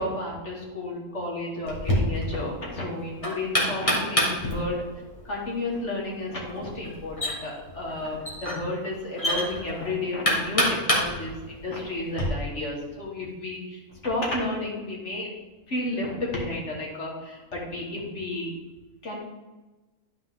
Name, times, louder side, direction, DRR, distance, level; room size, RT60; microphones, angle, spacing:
voice 1, 0.0-4.8 5.3-15.3 15.7-18.5 19.0-19.2, left 2 dB, 50° left, -3 dB, 1.9 m, -32 dB
Knock, 1.7-12.3, equal, 20° left, 1.6 m, -29 dB
11.5 x 4.6 x 3.7 m, 1.1 s
omnidirectional pair, 1.6 m